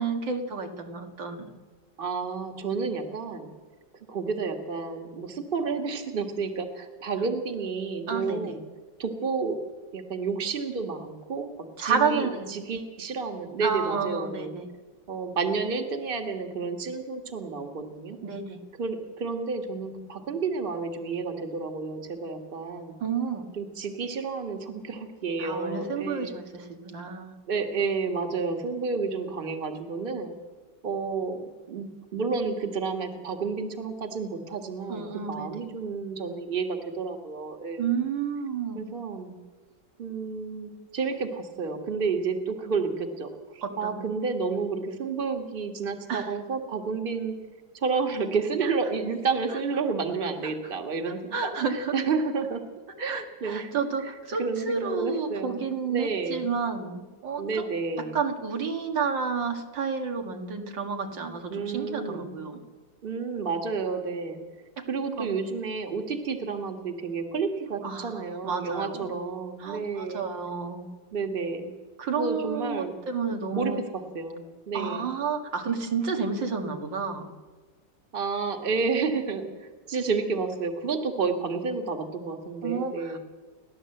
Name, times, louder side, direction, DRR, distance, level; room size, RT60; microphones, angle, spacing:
voice 1, 0.0-1.5 8.1-8.4 11.8-12.5 13.6-14.7 18.2-18.6 23.0-23.5 25.4-27.3 34.9-35.5 37.8-38.8 43.6-44.0 46.1-46.3 49.5-49.6 51.3-52.0 53.1-57.7 58.1-62.6 64.8-64.9 65.2-65.4 67.8-69.2 69.6-70.9 72.0-73.8 74.7-77.3 82.6-83.2, right 5 dB, 90° right, 3 dB, 2.7 m, -30 dB
voice 2, 2.0-3.5 4.1-8.6 9.0-9.6 9.9-11.5 11.8-14.5 15.1-18.2 18.8-22.9 23.6-26.4 27.5-30.3 30.8-31.4 31.7-37.9 38.7-39.4 40.0-47.4 47.7-52.6 53.0-53.7 54.0-54.1 54.4-55.6 55.9-56.5 57.4-58.2 61.5-62.4 63.0-64.4 64.9-70.2 71.1-71.7 72.1-73.0 73.3-75.1 78.1-83.2, right 4 dB, 30° right, 6 dB, 1.7 m, -30 dB
29.0 x 11.5 x 7.8 m, 1.4 s
omnidirectional pair, 1.9 m